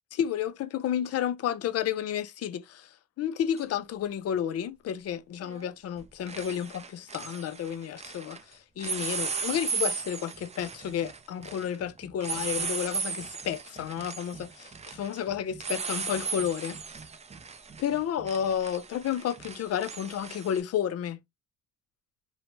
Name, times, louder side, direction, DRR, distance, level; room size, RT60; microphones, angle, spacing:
voice 1, 0.1-2.9 3.2-16.8 17.8-21.2, left 9 dB, 55° left, 0.5 m, -31 dB
sound 1, 3.6-3.7 5.4-5.7 6.0-8.4 8.8-20.6, right 5 dB, 20° right, 0.4 m, -36 dB
2.7 x 2.1 x 3.0 m
cardioid pair, 90°, 30 cm